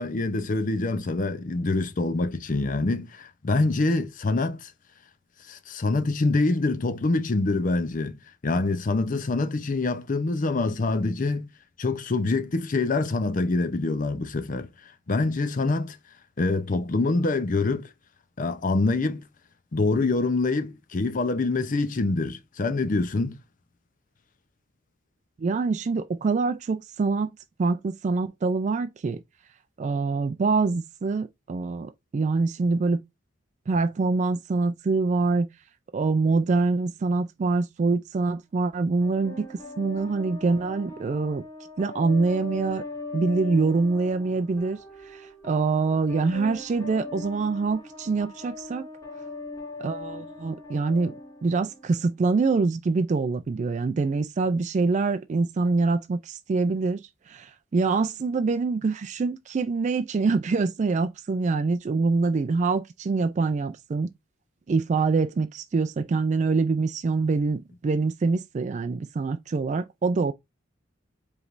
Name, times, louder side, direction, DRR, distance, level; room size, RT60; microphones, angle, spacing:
voice 1, 0.0-4.7 5.5-8.2 8.4-11.5 11.8-14.7 15.1-16.0 16.4-17.9 18.4-19.2 19.7-23.4, left 3 dB, 45° left, 0.6 m, -25 dB
voice 2, 25.4-27.3 27.6-29.2 29.8-33.0 33.7-35.5 35.9-41.4 41.8-42.8 43.1-48.9 49.8-51.1 51.4-64.1 64.7-70.3, right 4 dB, 40° right, 0.3 m, -25 dB
sound 1, 39.0-52.0, left 2 dB, 20° left, 1.7 m, -40 dB
5.0 x 3.2 x 2.5 m
head